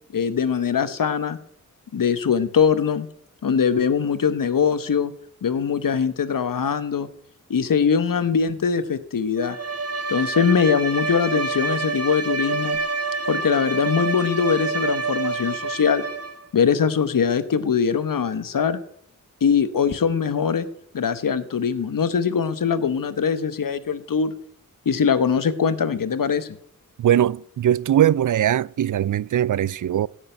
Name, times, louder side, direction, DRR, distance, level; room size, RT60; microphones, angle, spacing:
voice 1, 0.1-1.4 1.9-3.1 3.4-5.1 5.4-7.1 7.5-9.6 10.1-12.8 13.3-16.0 16.5-18.8 19.4-20.7 20.9-24.3 24.8-26.5, left 6 dB, 85° left, 1.2 m, -22 dB
Bowed string instrument, 9.4-16.5, right 3 dB, 50° right, 1.6 m, -27 dB
voice 2, 27.0-30.1, right 11 dB, 70° right, 0.4 m, -20 dB
16.5 x 6.6 x 9.0 m
wide cardioid pair, 85°, 32 cm